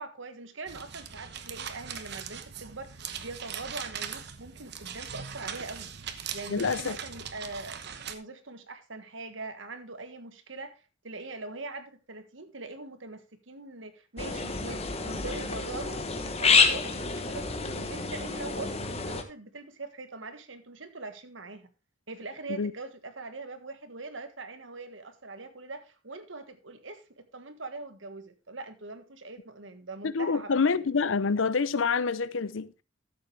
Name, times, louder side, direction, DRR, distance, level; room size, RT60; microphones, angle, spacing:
voice 1, 0.0-5.9 6.3-21.7 22.1-30.6, right 3 dB, 80° right, 1.5 m, -42 dB
sound 1, 0.7-8.1, right 7 dB, 60° right, 1.1 m, -40 dB
voice 2, 6.5-7.0 22.5-22.7 30.0-32.7, left 5 dB, 85° left, 0.6 m, -27 dB
sound 2, 14.2-19.2, left 4 dB, 35° left, 1.2 m, -28 dB
13.5 x 7.7 x 3.4 m
head